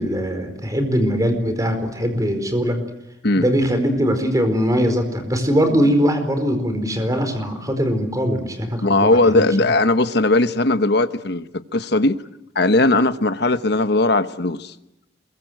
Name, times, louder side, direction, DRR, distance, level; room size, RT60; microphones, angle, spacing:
voice 1, 0.0-2.8 3.4-9.5, equal, 20° right, 4.5 m, -21 dB
voice 2, 8.8-12.2 12.5-14.7, left 2 dB, 60° left, 1.2 m, -18 dB
27.0 x 23.0 x 7.9 m
head